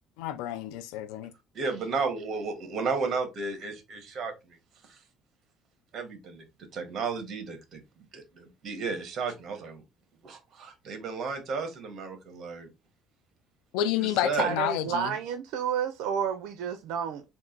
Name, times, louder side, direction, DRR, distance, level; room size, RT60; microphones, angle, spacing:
voice 1, 0.2-1.3 13.7-15.1, left 12 dB, 90° left, 0.4 m, -29 dB
voice 2, 1.5-4.6 4.8-5.0 5.9-7.8 8.1-9.8 10.2-12.7 14.0-14.5, right 4 dB, 50° right, 1.5 m, -33 dB
voice 3, 14.4-17.2, right 8 dB, 80° right, 0.5 m, -30 dB
3.6 x 2.6 x 3.8 m
cardioid pair, 110°, 0 cm